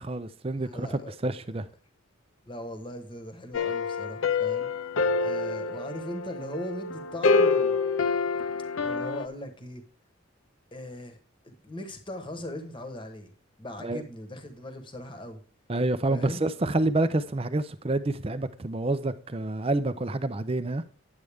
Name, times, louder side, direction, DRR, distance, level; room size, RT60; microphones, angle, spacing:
voice 1, 0.0-1.7 13.8-14.0 15.7-20.8, right 2 dB, 25° right, 0.5 m, -28 dB
voice 2, 0.6-1.1 2.5-4.7 5.2-7.8 8.8-9.8 10.7-11.2 11.4-13.3 13.6-15.4 16.1-16.4, left 1 dB, 25° left, 1.1 m, -39 dB
sound 1, 3.5-9.3, left 4 dB, 70° left, 0.6 m, -27 dB
9.8 x 7.8 x 3.5 m
head